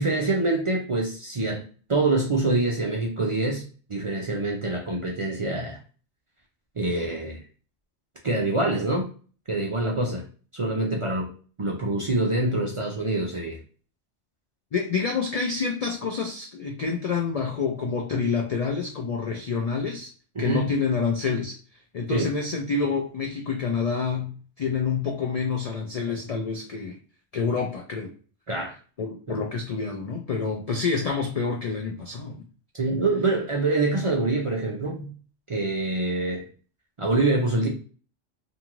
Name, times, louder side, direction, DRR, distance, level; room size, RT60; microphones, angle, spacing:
voice 1, 0.0-1.6 1.9-3.6 3.9-5.8 6.8-7.4 8.2-9.1 9.5-10.2 10.5-11.3 11.6-13.6 20.4-20.7 22.1-22.3 28.5-28.7 29.3-29.4 32.7-35.1 35.5-36.5 37.0-37.7, right 2 dB, 45° right, -1 dB, 0.4 m, -25 dB
voice 2, 14.7-20.1 20.4-21.6 21.9-27.0 27.3-28.1 29.0-32.4, left 5 dB, 65° left, 2 dB, 0.3 m, -27 dB
2.6 x 2.4 x 3.0 m, 0.40 s
omnidirectional pair, 1.2 m